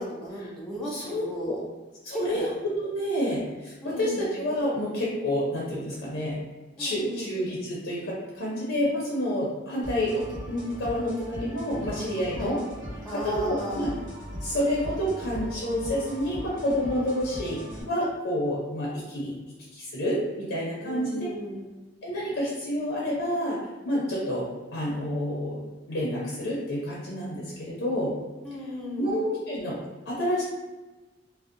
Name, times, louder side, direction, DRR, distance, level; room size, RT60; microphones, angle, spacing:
voice 1, 0.0-1.6 2.1-2.5 3.8-4.3 6.8-7.4 12.3-12.5 13.1-13.9 20.8-21.7 28.4-29.1, equal, 5° left, -5 dB, 0.4 m, -34 dB
voice 2, 0.9-1.6 2.0-6.4 6.8-12.6 13.1-13.9 14.4-19.3 19.7-21.2 22.0-23.6 23.8-28.1 29.0-29.8 30.1-30.4, equal, 70° left, -5 dB, 0.5 m, -29 dB
sound 1, 9.8-17.8, equal, 50° right, 1.3 m, -39 dB
2.6 x 2.0 x 2.5 m, 1.1 s
head